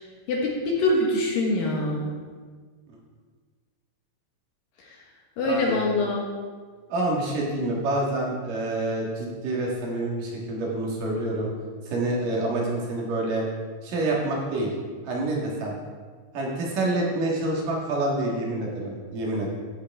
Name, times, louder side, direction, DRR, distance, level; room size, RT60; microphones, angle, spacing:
voice 1, 0.3-2.1 5.4-6.3, left 2 dB, 60° left, -2 dB, 2.7 m, -24 dB
voice 2, 5.4-5.8 6.9-11.5 11.9-13.5 13.8-14.7 15.0-15.7 16.3-19.5, right 2 dB, 55° right, -2 dB, 2.8 m, -27 dB
14.0 x 8.0 x 3.6 m, 1.5 s
omnidirectional pair, 5.4 m